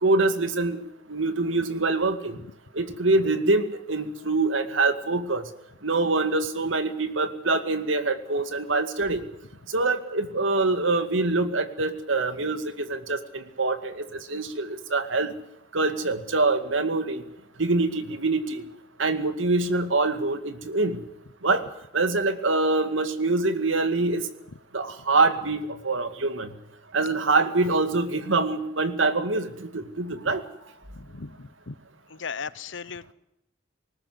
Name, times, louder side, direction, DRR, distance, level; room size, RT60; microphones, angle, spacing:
voice 1, 0.0-0.8 1.1-2.4 2.8-5.4 5.8-9.2 9.7-15.3 15.7-17.2 17.6-18.6 19.0-21.0 21.4-21.6 21.9-24.2 24.7-26.5 26.9-30.4, right 3 dB, 85° right, 9 dB, 2.1 m, -25 dB
voice 2, 31.0-31.8 32.1-33.1, left 5 dB, 75° left, 17 dB, 0.9 m, -37 dB
19.5 x 19.5 x 7.9 m, 0.82 s
head